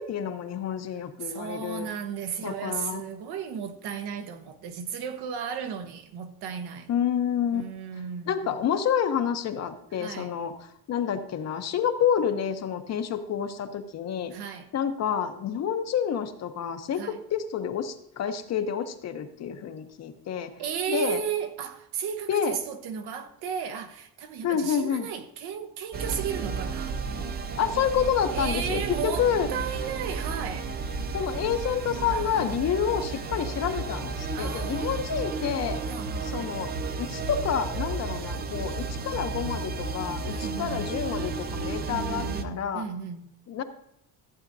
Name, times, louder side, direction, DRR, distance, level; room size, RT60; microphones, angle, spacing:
voice 1, 0.0-1.9 2.4-3.0 6.9-7.6 8.3-14.3 14.7-20.5 20.9-21.2 22.3-22.6 24.4-25.1 27.6-29.5 31.1-35.8 36.2-36.7 37.0-42.8 43.5-43.6, left 8 dB, 40° left, 0.8 m, -28 dB
voice 2, 1.2-6.9 7.5-8.5 10.0-10.3 14.3-14.7 17.0-17.2 20.6-27.0 28.3-30.7 32.1-32.7 34.3-35.2 35.9-36.6 40.3-40.9 41.9-43.3, right 7 dB, 75° right, 1.2 m, -35 dB
sound 1, 25.9-42.4, right 4 dB, 25° right, 0.4 m, -33 dB
14.5 x 8.7 x 2.7 m
cardioid pair, 180°, 39 cm